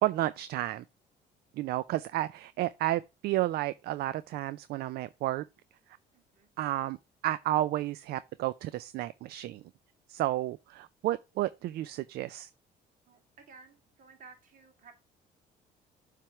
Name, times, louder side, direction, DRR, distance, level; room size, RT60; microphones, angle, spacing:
voice 1, 0.0-0.8 1.6-5.4 6.6-7.0 7.2-9.6 10.1-12.5, right 15 dB, 70° right, 0.4 m, -31 dB
voice 2, 6.1-6.5 13.1-15.0, right 4 dB, 50° right, 2.3 m, -55 dB
7.5 x 3.4 x 5.8 m
cardioid pair, 110°, 17 cm